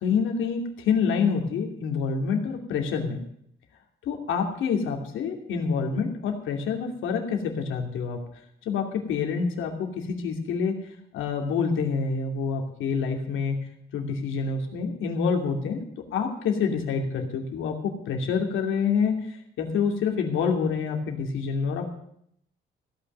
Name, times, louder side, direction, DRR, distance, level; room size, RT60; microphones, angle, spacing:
voice 1, 0.0-3.2 4.1-8.2 8.7-10.7 11.1-13.5 13.9-15.8 16.1-19.1 19.6-21.9, left 5 dB, 85° left, 3 dB, 2.6 m, -27 dB
16.5 x 5.8 x 9.3 m, 0.71 s
cardioid pair, 90°, 20 cm